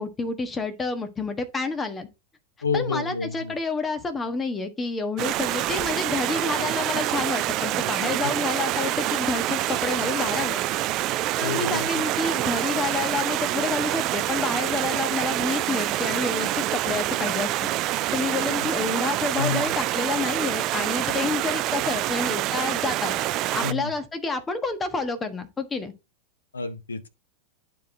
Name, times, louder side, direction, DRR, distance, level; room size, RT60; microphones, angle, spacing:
voice 1, 0.0-2.1 2.7-10.6 11.1-17.7 18.1-23.1 23.5-25.9, left 3 dB, 15° left, 1.4 m, -29 dB
voice 2, 2.6-3.6 8.2-8.3 11.4-11.9 19.4-19.7 23.6-23.9 26.5-27.1, left 5 dB, 75° left, 1.0 m, -29 dB
Stream, 5.2-23.7, right 15 dB, 35° right, 0.4 m, -26 dB
10.0 x 4.6 x 4.1 m
figure-of-eight pair, 90°, 0 cm